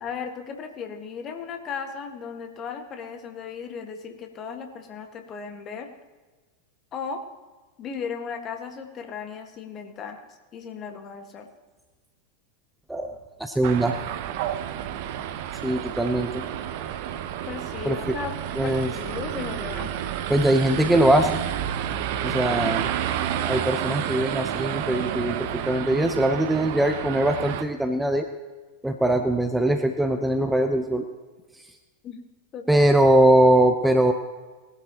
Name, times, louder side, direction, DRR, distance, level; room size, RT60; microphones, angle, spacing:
voice 1, 0.0-5.9 6.9-7.2 7.8-10.2 10.5-11.5 17.5-19.9 32.0-32.2 32.5-32.8, left 6 dB, 30° left, 5 dB, 1.7 m, -36 dB
voice 2, 12.9-13.9 15.6-16.4 17.9-18.0 18.6-18.9 20.3-21.3 22.2-22.9 23.5-28.3 28.8-31.0 32.7-34.1, right 1 dB, 5° right, 6 dB, 0.8 m, -21 dB
sound 1, 13.6-27.6, right 10 dB, 50° right, 0.8 m, -30 dB
19.5 x 12.0 x 3.0 m, 1.3 s
figure-of-eight pair, 90°, 0 cm